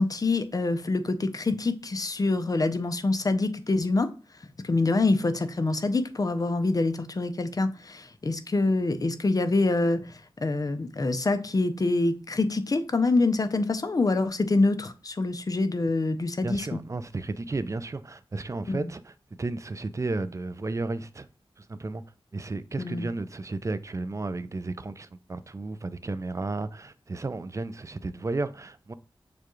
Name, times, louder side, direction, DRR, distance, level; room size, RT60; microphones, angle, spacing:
voice 1, 0.0-4.1 4.6-16.8 18.7-18.9 22.8-23.1, left 2 dB, 40° left, 0.6 m, -26 dB
voice 2, 16.4-21.3 21.6-22.0 22.3-28.9, right 3 dB, 35° right, 0.4 m, -33 dB
6.7 x 2.3 x 3.0 m
wide cardioid pair, 70°, 10 cm